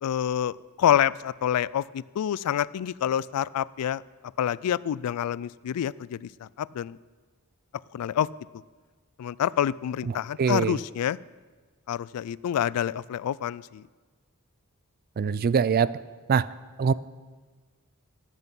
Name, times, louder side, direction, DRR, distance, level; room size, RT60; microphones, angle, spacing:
voice 1, 0.0-4.0 4.4-7.0 7.9-8.3 9.2-11.2 11.9-13.8, left 10 dB, 85° left, 21 dB, 0.3 m, -27 dB
voice 2, 10.4-10.7 15.2-15.9 16.3-16.4 16.8-16.9, right 6 dB, 45° right, 18 dB, 0.3 m, -22 dB
13.5 x 9.3 x 5.5 m, 1.4 s
head